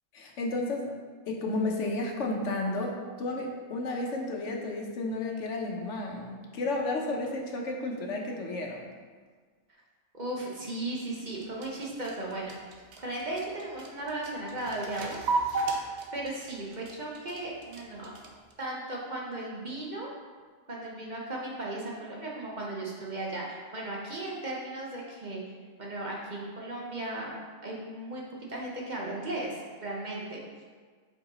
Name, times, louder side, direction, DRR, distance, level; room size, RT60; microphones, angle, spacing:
voice 1, 0.1-0.9 1.3-8.9, left 2 dB, 75° left, 1 dB, 1.2 m, -32 dB
voice 2, 10.1-12.6 13.0-15.2 16.1-18.1 18.6-20.1 20.7-25.5 25.8-27.3 27.6-28.2 28.5-30.4, right 2 dB, 40° right, -3 dB, 1.0 m, -36 dB
sound 1, 11.3-18.5, right 3 dB, 65° right, 1.0 m, -34 dB
5.2 x 4.7 x 4.2 m, 1.5 s
omnidirectional pair, 1.3 m